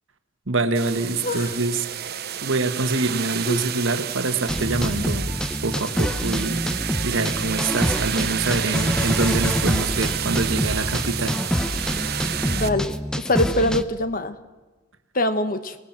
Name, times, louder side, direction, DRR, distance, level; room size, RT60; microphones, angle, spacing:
voice 1, 0.5-1.9 2.4-5.3 5.6-6.6 7.0-11.4, right 3 dB, 70° right, 8 dB, 1.5 m, -25 dB
sound 1, 0.7-12.7, right 10 dB, 50° right, 0.9 m, -30 dB
sound 2, 4.5-13.8, equal, 5° left, 0.7 m, -26 dB
voice 2, 12.4-12.9 13.3-14.4 15.1-15.8, left 1 dB, 45° left, 10 dB, 1.3 m, -23 dB
25.5 x 19.5 x 7.5 m, 1.2 s
head